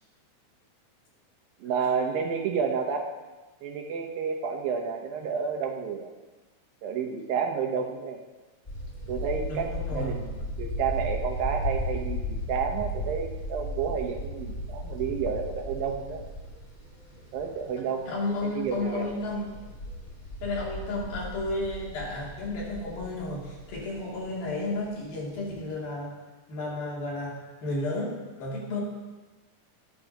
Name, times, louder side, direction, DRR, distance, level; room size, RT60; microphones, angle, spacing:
voice 1, 1.6-3.1 3.6-6.1 6.8-8.2 9.1-16.2 17.3-18.1 18.4-19.1, right 6 dB, 80° right, 2 dB, 3.0 m, -30 dB
sound 1, 8.7-25.6, equal, 15° left, 2.4 m, -36 dB
voice 2, 9.4-10.2 18.1-19.5 20.4-26.2 26.5-28.8, left 2 dB, 80° left, -4 dB, 4.7 m, -32 dB
19.5 x 10.5 x 3.0 m, 1.2 s
omnidirectional pair, 4.1 m